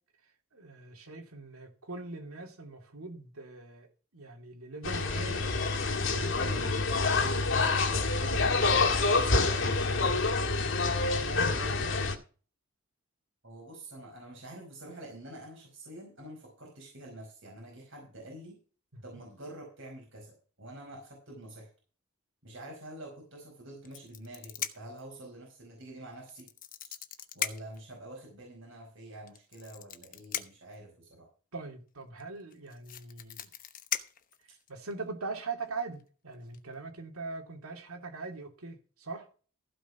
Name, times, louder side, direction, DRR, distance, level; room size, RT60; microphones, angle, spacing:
voice 1, 0.5-5.5 6.1-8.8 11.0-12.1 18.9-19.0 31.5-33.5 34.7-39.3, right 3 dB, 90° right, 2.8 m, -42 dB
sound 1, 4.8-12.1, left 3 dB, 60° left, 1.8 m, -27 dB
voice 2, 13.4-18.6 19.0-21.7 22.4-26.5 27.3-31.3, right 1 dB, 60° right, 5.0 m, -47 dB
sound 2, 23.8-25.0 26.3-27.8 29.3-30.7 32.2-32.3 32.5-34.9 35.8-36.0 36.3-36.6, left 10 dB, 40° left, 1.0 m, -38 dB
15.5 x 5.2 x 5.8 m
head